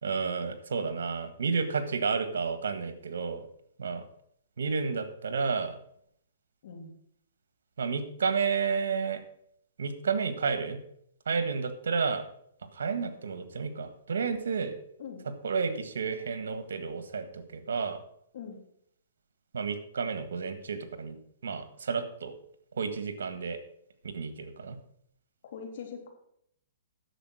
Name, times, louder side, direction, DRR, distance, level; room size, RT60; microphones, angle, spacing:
voice 1, 0.0-3.5 3.8-4.0 4.6-5.8 7.8-9.2 9.8-10.8 11.2-12.2 12.7-14.8 15.2-18.0 19.5-22.3 22.7-23.6 24.1-24.8, right 5 dB, 85° right, 10 dB, 1.6 m, -31 dB
voice 2, 6.6-6.9 15.0-15.2 18.3-18.6 25.4-26.1, left 6 dB, 60° left, 3 dB, 3.2 m, -42 dB
10.0 x 7.2 x 6.2 m, 0.69 s
hypercardioid pair, 150°, 0 cm